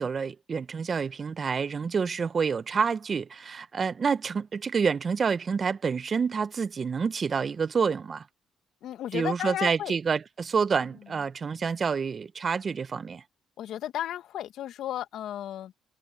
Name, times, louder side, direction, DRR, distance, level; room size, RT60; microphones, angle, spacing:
voice 1, 0.0-8.2 9.1-13.2, right 5 dB, 45° right, 1.1 m, -28 dB
voice 2, 8.8-10.0 11.1-11.2 13.6-15.8, left 12 dB, 70° left, 1.5 m, -34 dB
supercardioid pair, 60°, 0 cm